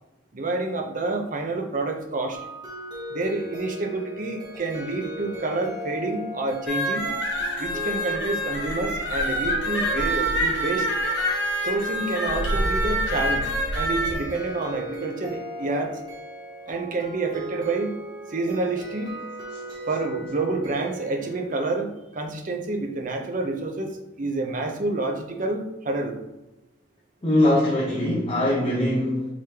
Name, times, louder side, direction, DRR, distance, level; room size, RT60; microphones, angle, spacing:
voice 1, 0.3-2.4 3.1-7.1 7.6-10.9 11.6-16.0 16.7-18.0 18.3-19.1 19.9-26.2, right 2 dB, 45° right, 3 dB, 0.6 m, -28 dB
sound 1, 2.3-21.5, right 1 dB, 25° right, 1.0 m, -38 dB
sound 2, 6.7-14.1, equal, 75° left, 1.3 m, -26 dB
voice 2, 27.2-29.3, left 1 dB, 30° left, -5 dB, 0.9 m, -22 dB
4.9 x 3.7 x 2.9 m, 0.96 s
head